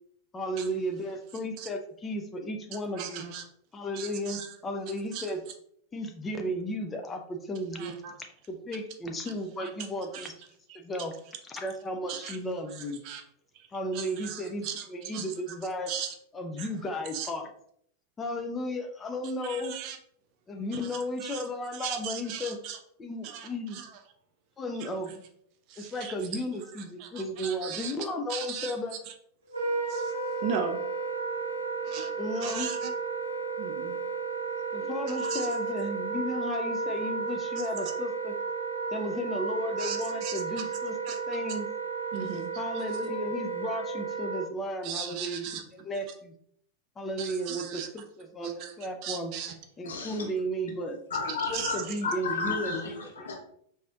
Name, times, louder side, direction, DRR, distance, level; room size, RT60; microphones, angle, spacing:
voice 1, 0.3-3.2 3.7-5.4 5.9-7.9 8.5-10.3 10.7-11.1 11.5-13.0 13.7-15.9 16.3-17.5 18.2-19.7 20.5-22.6 23.0-23.8 24.6-25.2 25.8-28.9 32.2-32.7 34.7-38.3 38.9-40.9 41.3-41.7 42.6-45.4 45.8-46.3 47.0-49.3 49.8-51.0 51.5-52.7, equal, 20° left, 4 dB, 0.5 m, -34 dB
voice 2, 2.9-3.5 3.9-4.6 5.1-5.3 7.7-8.1 9.6-9.7 10.1-10.3 10.7-10.8 12.1-12.4 12.7-13.2 13.5-13.7 13.9-15.3 15.9-16.1 16.6-16.7 17.1-17.3 19.4-20.0 20.7-21.4 21.7-22.8 23.2-24.0 24.7-24.9 25.7-26.4 26.7-28.0 28.3-28.7 29.1-29.2 29.9-30.8 31.9-32.9 33.6-34.0 35.1-35.6 37.6-37.9 39.8-40.7 41.1-41.2 42.1-42.8 44.8-45.6 47.2-47.9 48.4-48.7 49.0-49.6 51.5-52.0, right 8 dB, 45° right, 5 dB, 0.5 m, -38 dB
Wind instrument woodwind instrument, 29.5-44.4, right 4 dB, 85° right, 0.6 m, -33 dB
voice 3, 49.8-50.2 51.1-53.4, left 4 dB, 65° left, 0 dB, 0.9 m, -32 dB
4.9 x 2.7 x 2.3 m, 0.67 s
figure-of-eight pair, 90°, 0 cm